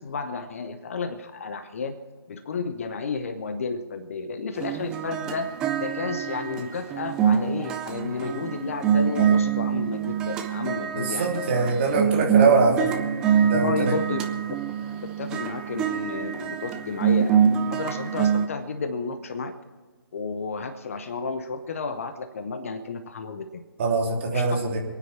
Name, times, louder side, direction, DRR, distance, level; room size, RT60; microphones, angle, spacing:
voice 1, 0.0-2.0 2.3-5.5 5.8-11.4 11.9-12.1 13.5-14.5 14.9-19.5 20.1-23.6 24.3-24.5, left 4 dB, 35° left, 10 dB, 0.9 m, -32 dB
sound 1, 4.6-18.5, right 8 dB, 5° right, 0.4 m, -25 dB
voice 2, 10.9-12.9 13.4-13.9 23.8-24.8, right 4 dB, 30° right, -1 dB, 3.0 m, -23 dB
26.5 x 9.5 x 4.3 m, 1.5 s
figure-of-eight pair, 145°, 13 cm